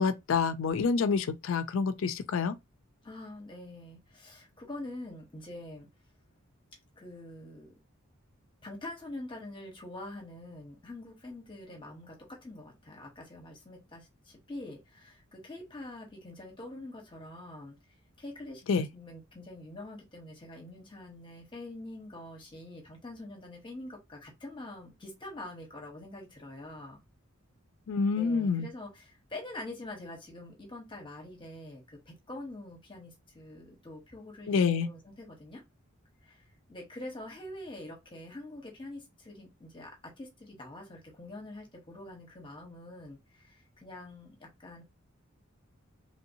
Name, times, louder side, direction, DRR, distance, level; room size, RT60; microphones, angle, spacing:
voice 1, 0.0-2.6 18.7-18.9 27.9-28.7 34.5-34.9, left 5 dB, 65° left, 0.4 m, -27 dB
voice 2, 3.0-5.9 7.0-7.7 8.6-17.7 18.2-27.0 28.1-35.6 36.2-44.8, left 1 dB, 25° left, 1.0 m, -45 dB
3.2 x 2.8 x 2.6 m
head